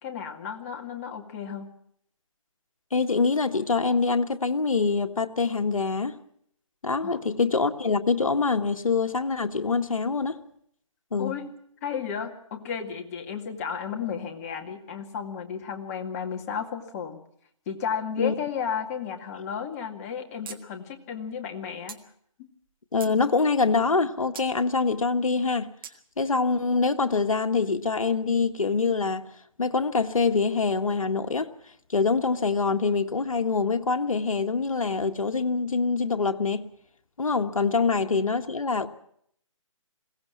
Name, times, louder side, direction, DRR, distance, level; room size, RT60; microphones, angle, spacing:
voice 1, 0.0-1.7 7.0-7.2 11.2-11.5 11.8-17.2 17.7-22.0 22.4-22.5, left 7 dB, 25° left, 2.2 m, -33 dB
voice 2, 2.9-6.2 6.8-10.4 11.1-11.4 18.2-18.3 22.9-25.7 26.2-29.3 29.6-31.5 31.9-36.7 37.2-38.9, left 4 dB, 80° left, 1.6 m, -25 dB
sound 1, 20.5-20.6 20.9-21.0 21.9-22.0 22.6-23.2 24.4-24.5 25.8-26.0, right 8 dB, 40° right, 1.6 m, -41 dB
21.5 x 17.5 x 7.3 m
figure-of-eight pair, 150°, 17 cm